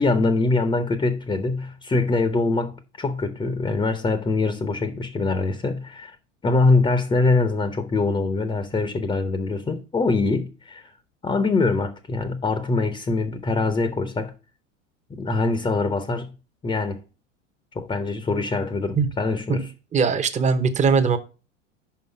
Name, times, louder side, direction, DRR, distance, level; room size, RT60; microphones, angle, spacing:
voice 1, 0.0-6.2 6.4-10.9 11.2-14.3 15.1-16.3 16.6-17.0 17.7-19.7, left 3 dB, 15° left, 0.8 m, -23 dB
voice 2, 19.9-21.2, right 5 dB, 20° right, 0.9 m, -20 dB
5.8 x 5.2 x 6.5 m
hypercardioid pair, 95°, 38 cm